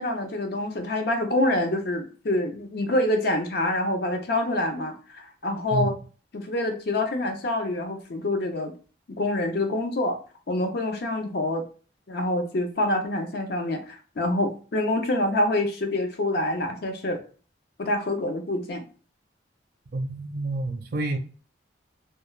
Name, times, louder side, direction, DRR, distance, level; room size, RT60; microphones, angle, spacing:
voice 1, 0.0-5.9 6.3-8.7 9.2-10.2 10.5-11.6 12.1-17.2 17.8-18.8, left 1 dB, 55° left, 0.5 m, -26 dB
voice 2, 19.9-21.2, right 2 dB, 50° right, 0.5 m, -28 dB
2.3 x 2.2 x 3.0 m
head